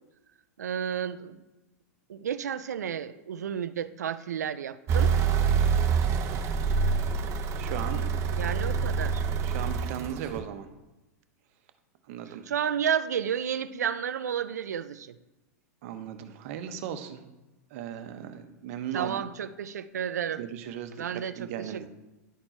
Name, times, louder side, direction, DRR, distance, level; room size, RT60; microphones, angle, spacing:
voice 1, 0.6-1.4 2.1-5.1 8.4-9.2 12.5-15.1 18.9-20.4 21.0-21.9, right 8 dB, 90° right, 14 dB, 0.5 m, -31 dB
sound 1, 4.9-10.4, right 6 dB, 35° right, 0.9 m, -26 dB
voice 2, 7.6-8.1 9.4-10.7 12.1-12.5 15.8-17.2 17.7-19.2 20.4-21.0 21.4-21.9, right 9 dB, 60° right, 8 dB, 1.0 m, -37 dB
11.0 x 4.5 x 4.4 m, 1.0 s
hypercardioid pair, 120°, 9 cm